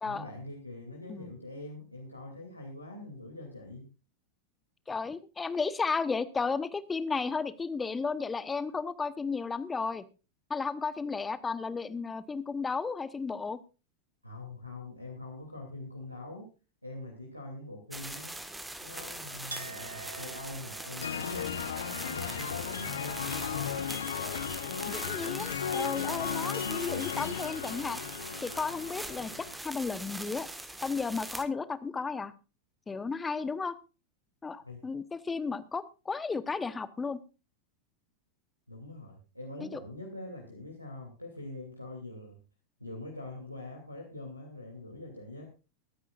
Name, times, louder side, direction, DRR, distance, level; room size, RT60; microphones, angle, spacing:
voice 1, 0.0-3.8 14.2-16.5 16.8-18.4 18.8-21.5 22.0-23.7 34.6-34.8 38.7-42.4 42.8-45.5, left 2 dB, 90° left, -2 dB, 2.8 m, -44 dB
voice 2, 4.9-10.0 10.5-13.6 24.8-28.0 28.4-30.5 30.8-32.3 32.9-33.7 34.4-37.2 39.7-39.8, left 4 dB, 15° left, 15 dB, 1.0 m, -33 dB
sound 1, 17.9-31.4, right 1 dB, 5° right, 1.5 m, -42 dB
Chink clink, 19.5-25.0 25.3-26.2, right 5 dB, 75° right, 1.5 m, -49 dB
sound 2, 21.0-29.5, left 8 dB, 65° left, 1.0 m, -35 dB
22.5 x 9.9 x 2.5 m, 0.32 s
figure-of-eight pair, 90°, 0 cm